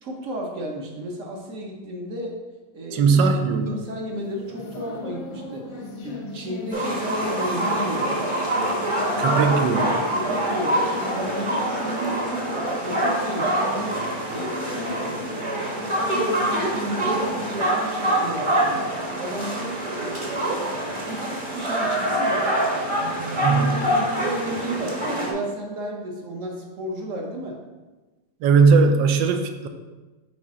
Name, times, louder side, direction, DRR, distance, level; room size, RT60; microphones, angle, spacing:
voice 1, 0.0-2.4 2.7-3.2 3.7-8.3 10.1-12.5 12.8-14.0 14.3-15.5 15.9-18.9 19.2-20.7 21.1-22.5 23.0-23.5 23.8-25.0 25.3-27.6, right 1 dB, 55° right, 0 dB, 1.0 m, -33 dB
voice 2, 2.9-3.7 9.2-10.0 23.4-23.9 28.4-29.7, right 5 dB, 85° right, 7 dB, 1.3 m, -19 dB
sound 1, 3.5-22.0, left 3 dB, 80° left, 1.6 m, -39 dB
sound 2, 6.7-25.3, right 1 dB, 25° right, 0.8 m, -25 dB
5.0 x 4.8 x 4.1 m, 1.2 s
omnidirectional pair, 2.0 m